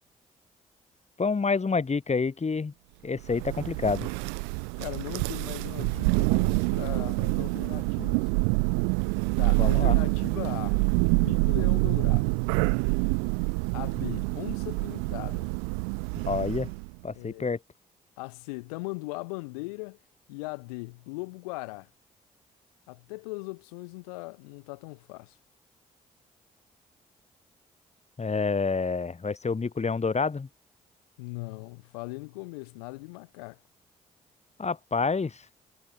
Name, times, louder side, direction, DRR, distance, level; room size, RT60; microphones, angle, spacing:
voice 1, 1.2-2.7 3.0-4.1 9.6-10.0 16.3-16.7 17.0-17.6 28.2-30.5 34.6-35.4, left 4 dB, 35° left, 6.9 m, -28 dB
Thunder, 3.2-16.9, right 40 dB or more, 80° right, 2.4 m, -26 dB
voice 2, 4.8-8.3 9.4-10.8 11.2-12.4 13.7-15.5 17.1-17.5 18.2-20.0 20.3-21.9 22.9-25.4 31.2-33.6, left 27 dB, 80° left, 4.2 m, -39 dB
figure-of-eight pair, 40°, 19 cm